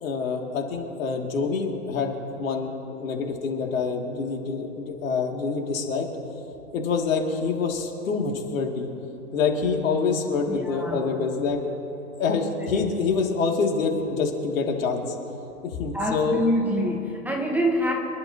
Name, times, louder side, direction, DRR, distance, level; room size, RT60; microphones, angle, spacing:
voice 1, 0.0-6.1 6.7-8.9 9.3-11.6 12.2-15.2 15.6-16.4, left 5 dB, 60° left, 1 dB, 2.7 m, -26 dB
voice 2, 10.5-11.0 12.7-12.9 15.9-17.9, equal, 5° right, 0 dB, 1.1 m, -26 dB
27.5 x 11.5 x 2.9 m, 3.0 s
hypercardioid pair, 120°, 45 cm